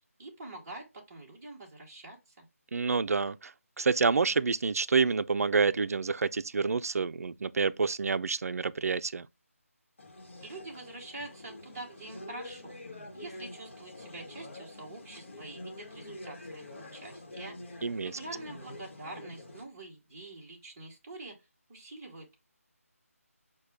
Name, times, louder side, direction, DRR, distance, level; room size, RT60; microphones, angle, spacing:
voice 1, 0.2-2.4 10.3-12.8 13.1-21.4 21.7-22.3, right 2 dB, 10° right, 0.9 m, -46 dB
voice 2, 2.7-3.5 3.8-9.3 17.8-18.1, right 4 dB, 75° right, 0.3 m, -28 dB
sound 1, 10.0-19.6, left 2 dB, 50° left, 1.0 m, -46 dB
6.4 x 2.2 x 3.3 m
figure-of-eight pair, 175°, 8 cm